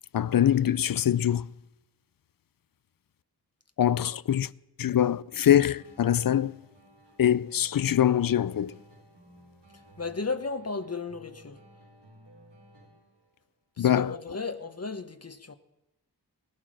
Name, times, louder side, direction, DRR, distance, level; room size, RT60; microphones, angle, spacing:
voice 1, 0.1-1.5 3.8-4.5 4.8-6.6 7.2-8.8 13.8-14.1, left 10 dB, 60° left, 0.5 m, -23 dB
sound 1, 5.3-13.3, right 1 dB, 80° right, 3.5 m, -55 dB
voice 2, 10.0-11.6 13.8-15.5, left 4 dB, 40° left, 0.9 m, -34 dB
18.0 x 12.0 x 6.3 m
wide cardioid pair, 75°, 40 cm